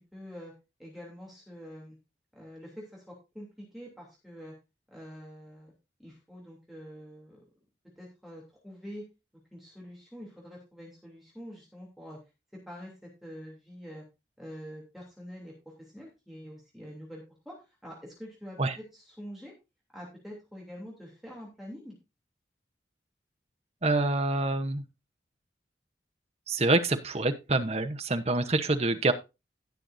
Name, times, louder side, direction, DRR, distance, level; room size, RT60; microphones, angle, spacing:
voice 1, 0.1-0.5 0.8-2.0 2.3-4.5 4.9-5.7 6.0-7.4 8.0-9.0 9.5-12.2 12.7-14.0 14.4-15.5 15.8-19.5 19.9-22.0 28.9-29.1, equal, ahead, -3 dB, 3.0 m, -46 dB
voice 2, 23.8-24.8 26.5-29.1, right 2 dB, 35° right, 7 dB, 1.0 m, -26 dB
17.5 x 6.5 x 2.7 m, 0.26 s
head